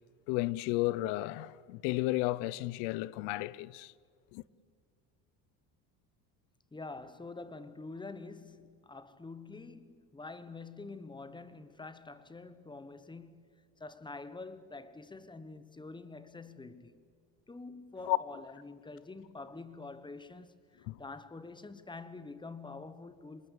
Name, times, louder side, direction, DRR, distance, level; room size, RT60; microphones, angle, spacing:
voice 1, 0.3-3.9 4.3-4.4 18.1-18.2 20.9-21.0, left 19 dB, 85° left, 0.8 m, -32 dB
voice 2, 6.7-13.5 13.8-17.1 17.5-23.5, left 3 dB, 10° left, 1.2 m, -46 dB
26.0 x 20.0 x 8.3 m
cardioid pair, 120°, 41 cm